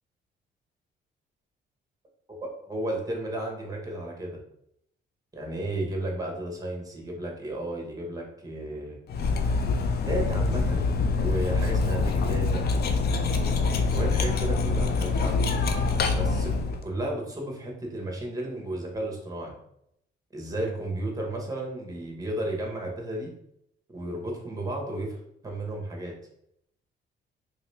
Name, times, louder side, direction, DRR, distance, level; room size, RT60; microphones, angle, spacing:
voice 1, 2.3-4.4 5.3-9.0 10.1-10.8 11.2-12.6 13.8-15.4 16.2-16.5 16.8-19.5 20.3-23.3 23.9-25.2 25.4-26.1, right 1 dB, 20° right, 0 dB, 1.1 m, -33 dB
Cutlery silverware, 9.1-16.8, left 4 dB, 55° left, 0.5 m, -25 dB
3.2 x 2.8 x 3.2 m, 0.74 s
cardioid pair, 90°, 20 cm